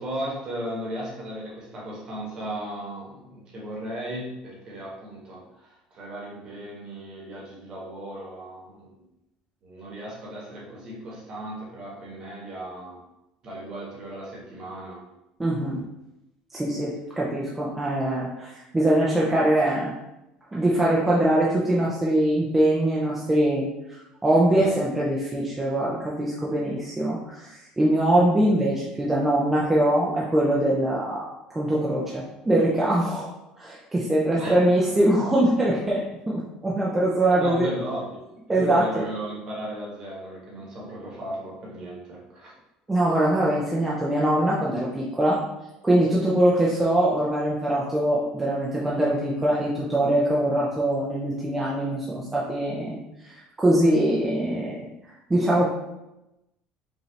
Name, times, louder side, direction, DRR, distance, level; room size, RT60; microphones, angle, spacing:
voice 1, 0.0-9.0 9.6-13.0 13.4-15.0 15.7-15.8 24.5-24.7 34.4-34.6 37.3-38.1 38.5-42.5, right 1 dB, 30° right, -4 dB, 1.3 m, -36 dB
voice 2, 15.4-15.8 16.5-19.9 20.5-31.2 31.5-33.3 33.6-37.7 38.5-39.0 42.9-45.4 45.8-54.8 55.3-55.7, right 1 dB, 10° right, -6 dB, 0.5 m, -23 dB
5.3 x 2.7 x 3.2 m, 0.93 s
cardioid pair, 170°, 2 cm